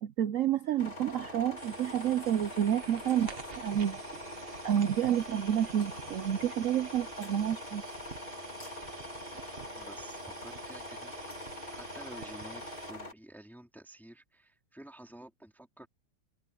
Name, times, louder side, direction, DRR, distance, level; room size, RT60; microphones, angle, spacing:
voice 1, 0.0-4.0 4.6-7.8, right 10 dB, 75° right, 0.7 m, -29 dB
sound 1, 0.8-13.1, left 1 dB, 25° left, 3.7 m, -43 dB
sound 2, 1.6-12.9, right 5 dB, 35° right, 1.3 m, -50 dB
voice 2, 9.2-15.9, right 1 dB, ahead, 3.1 m, -51 dB
omnidirectional pair, 2.0 m